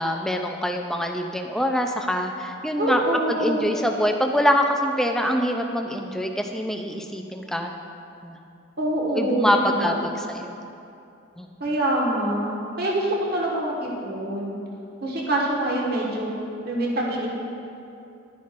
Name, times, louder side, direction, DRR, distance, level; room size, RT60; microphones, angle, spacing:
voice 1, 0.0-3.0 3.3-7.7 8.2-8.4 9.2-9.9 10.3-10.6 11.4-11.5, equal, ahead, 3 dB, 0.4 m, -24 dB
voice 2, 2.8-3.7 8.8-10.1 11.6-14.6 15.0-16.3 16.6-17.3, right 1 dB, 45° right, -3 dB, 1.5 m, -25 dB
12.0 x 9.3 x 2.6 m, 2.7 s
head